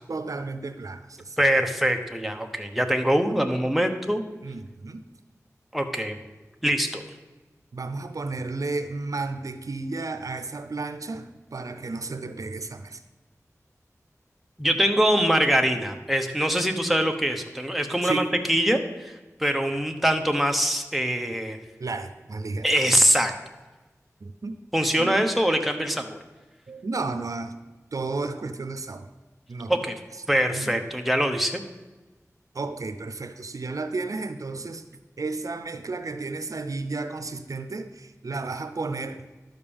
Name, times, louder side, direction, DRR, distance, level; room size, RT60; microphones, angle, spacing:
voice 1, 0.1-1.4 4.4-5.0 7.7-13.0 18.0-18.3 21.8-22.7 24.2-24.6 25.0-25.2 26.7-27.6 27.9-29.1 29.5-29.8 30.5-30.7 32.5-34.9 35.2-39.3, right 3 dB, 75° right, 9 dB, 0.6 m, -33 dB
voice 2, 1.4-4.2 5.7-6.2 6.6-7.0 14.6-19.1 19.4-21.6 22.6-23.3 24.7-26.2 29.7-29.9 30.3-31.6, equal, ahead, 5 dB, 1.1 m, -23 dB
12.0 x 5.3 x 7.1 m, 1.2 s
wide cardioid pair, 60°, 6 cm